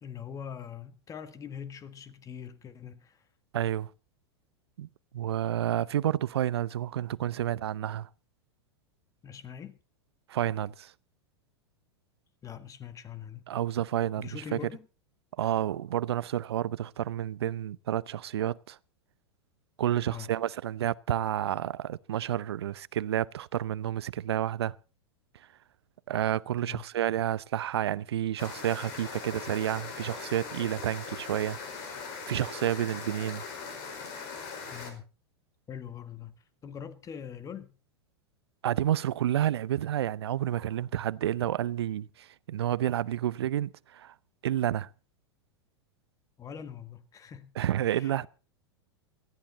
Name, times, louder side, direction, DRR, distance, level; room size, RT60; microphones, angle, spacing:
voice 1, 0.0-3.2 9.2-9.8 12.4-13.5 14.2-14.9 20.1-20.3 26.6-26.8 34.7-35.0 35.7-36.3 36.6-37.7 46.4-47.5 47.8-48.3, left 8 dB, 25° left, 1.6 m, -43 dB
voice 2, 3.5-3.9 4.8-4.9 5.1-8.1 10.3-10.9 13.5-14.6 15.4-18.8 19.8-24.8 26.1-31.6 32.3-33.4 38.6-44.1 44.4-44.9 47.6-48.3, right 11 dB, 70° right, 0.7 m, -30 dB
sound 1, 28.4-34.9, left 5 dB, 50° left, 4.7 m, -40 dB
18.5 x 14.0 x 4.0 m
hypercardioid pair, 100°, 14 cm